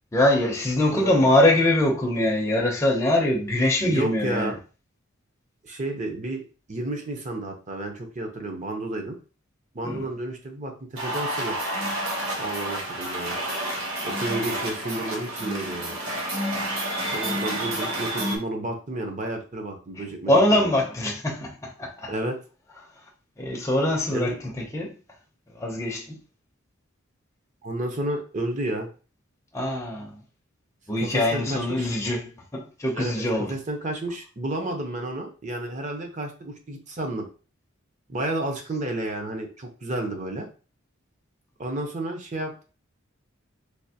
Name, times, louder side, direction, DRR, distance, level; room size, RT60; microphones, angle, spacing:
voice 1, 0.1-4.5 9.8-10.1 20.0-22.1 23.4-24.9 25.5-26.2 29.5-30.2 30.9-33.5, left 1 dB, 15° left, 0.5 m, -23 dB
voice 2, 3.8-4.6 5.6-6.4 6.7-9.2 9.7-10.7 11.0-11.6 12.4-13.4 14.0-16.0 17.1-20.3 20.6-20.7 22.1-22.4 24.1-24.4 27.6-28.9 31.0-31.9 32.9-37.3 38.1-40.5 41.6-42.6, right 1 dB, 35° right, 0.6 m, -31 dB
sound 1, 11.0-18.4, right 1 dB, 80° right, 1.0 m, -29 dB
3.4 x 2.8 x 2.7 m
head